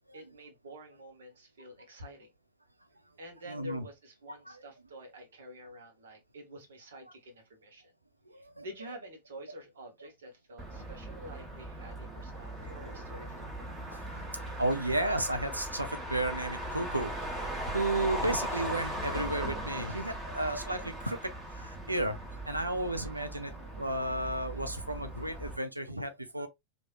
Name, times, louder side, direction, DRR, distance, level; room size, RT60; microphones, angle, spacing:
voice 1, 0.1-2.3 3.2-7.9 8.3-13.7, right 1 dB, 65° right, 1.1 m, -49 dB
voice 2, 3.5-3.9 4.5-4.6 8.3-8.7 12.6-12.9 14.3-21.2 21.5-22.2 22.5-26.5, right 1 dB, 85° right, 0.5 m, -33 dB
Motor vehicle (road), 10.6-25.6, right 1 dB, 20° right, 1.3 m, -39 dB
3.2 x 2.5 x 2.3 m
figure-of-eight pair, 90°, 0 cm